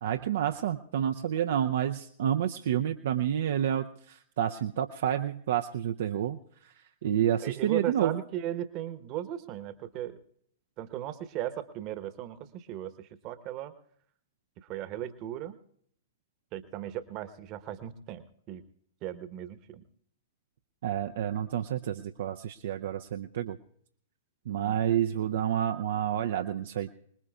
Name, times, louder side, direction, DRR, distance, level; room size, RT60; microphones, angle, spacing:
voice 1, 0.0-6.7 7.0-8.2 20.8-23.6 24.5-26.9, right 10 dB, 55° right, 6 dB, 0.5 m, -29 dB
voice 2, 7.4-10.2 10.8-13.7 14.6-15.6 16.5-18.6 19.0-19.9 24.6-24.9, right 12 dB, 35° right, 12 dB, 1.1 m, -37 dB
25.5 x 20.0 x 2.4 m, 0.66 s
figure-of-eight pair, 105°, 0 cm